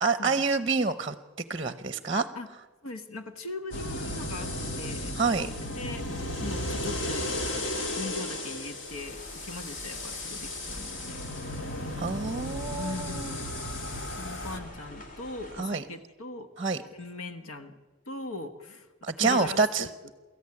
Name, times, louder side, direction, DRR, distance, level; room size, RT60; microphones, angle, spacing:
voice 1, 0.0-1.1 1.5-2.3 5.2-5.5 12.0-13.4 15.6-15.8 16.6-16.8 19.0-19.9, right 4 dB, 25° right, 11 dB, 0.7 m, -27 dB
voice 2, 2.8-5.1 5.4-7.7 7.9-11.9 12.8-13.5 14.2-16.5 16.9-17.8 18.1-18.9 19.2-20.1, left 3 dB, 90° left, 9 dB, 1.3 m, -40 dB
sound 1, 3.7-14.6, left 1 dB, 55° left, 2.2 m, -35 dB
sound 2, 8.9-15.6, left 1 dB, 40° left, 2.6 m, -46 dB
23.5 x 14.0 x 9.7 m, 1.3 s
head